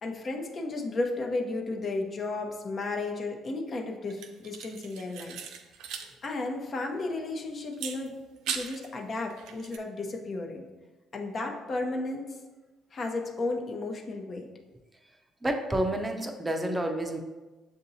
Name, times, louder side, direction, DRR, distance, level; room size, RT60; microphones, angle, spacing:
voice 1, 0.0-5.4 6.2-8.1 8.5-10.6 11.1-12.4 12.9-14.5, left 2 dB, 45° left, 1 dB, 0.8 m, -33 dB
sound 1, 4.1-6.1 6.4-6.5 7.7-8.9 9.3-9.8, right 7 dB, 70° right, 0.4 m, -39 dB
voice 2, 15.4-17.2, right 1 dB, 20° right, 4 dB, 0.6 m, -29 dB
6.8 x 2.6 x 2.7 m, 1.2 s
hypercardioid pair, 55°, 0 cm